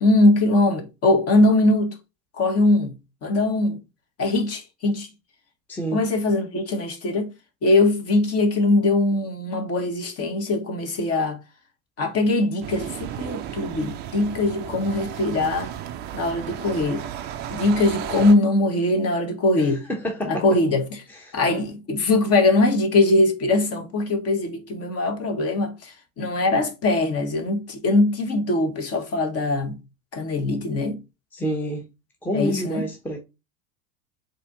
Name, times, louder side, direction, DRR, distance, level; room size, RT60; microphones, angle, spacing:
voice 1, 0.0-1.9 2.4-2.9 3.2-3.8 4.2-5.1 5.9-7.3 7.6-11.4 12.0-15.7 16.1-17.0 17.5-19.8 20.2-20.9 21.3-29.8 30.1-31.0 32.3-32.9, left 2 dB, 30° left, 1.1 m, -21 dB
voice 2, 5.7-6.0 19.6-20.4 21.1-21.4 31.3-31.8 32.2-33.2, equal, 5° left, 0.7 m, -28 dB
sound 1, 12.6-18.3, right 10 dB, 25° right, 0.3 m, -34 dB
4.1 x 2.8 x 3.7 m
hypercardioid pair, 85°, 46 cm